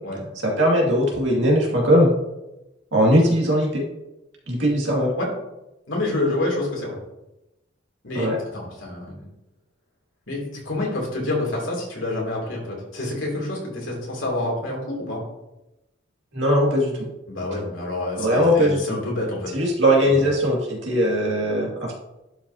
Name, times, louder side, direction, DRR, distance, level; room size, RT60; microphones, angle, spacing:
voice 1, 0.4-2.1 2.9-3.8 4.5-5.1 8.1-8.4 16.3-17.1 18.2-19.0 19.5-21.9, equal, 70° right, -2 dB, 2.2 m, -20 dB
voice 2, 5.9-7.0 8.0-9.3 10.3-15.2 17.3-19.5 20.0-20.2, left 2 dB, 85° left, -2 dB, 2.8 m, -28 dB
11.0 x 5.4 x 2.8 m, 0.94 s
head